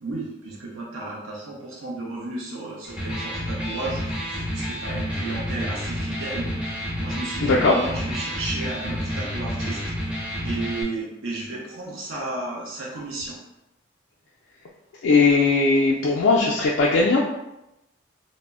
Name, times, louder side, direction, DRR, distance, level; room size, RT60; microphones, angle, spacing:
voice 1, 0.0-6.5 7.0-10.1 10.4-13.4, right 2 dB, 80° right, -3 dB, 0.6 m, -33 dB
Electric guitar, 2.8-10.8, equal, 5° right, 0.3 m, -30 dB
voice 2, 7.4-7.7 15.0-17.2, left 3 dB, 70° left, -4 dB, 0.3 m, -18 dB
2.0 x 2.0 x 3.4 m, 0.91 s
head